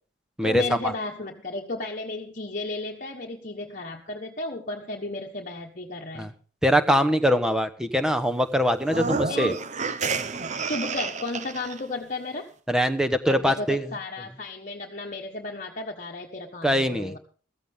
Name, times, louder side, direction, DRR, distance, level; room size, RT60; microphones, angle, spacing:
voice 1, 0.4-6.3 9.3-9.7 10.0-10.1 10.7-12.5 13.3-17.2, left 2 dB, 40° left, 0 dB, 1.3 m, -34 dB
voice 2, 6.6-9.5 12.7-13.9 16.6-17.1, equal, 5° right, 8 dB, 1.0 m, -22 dB
sound 1, 8.8-11.8, right 4 dB, 35° right, 0.8 m, -29 dB
15.0 x 14.5 x 3.6 m, 0.40 s
head